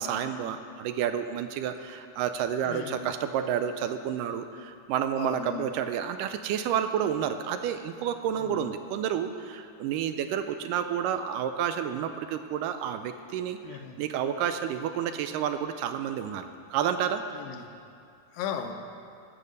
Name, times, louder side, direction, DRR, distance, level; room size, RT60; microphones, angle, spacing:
voice 1, 0.0-17.2, right 9 dB, 80° right, 9 dB, 2.0 m, -30 dB
voice 2, 2.7-3.1 5.2-5.6 8.4-8.6 13.6-14.0 17.3-17.7 18.3-18.7, left 8 dB, 80° left, 5 dB, 2.4 m, -36 dB
17.5 x 6.6 x 5.3 m, 2.5 s
omnidirectional pair, 4.1 m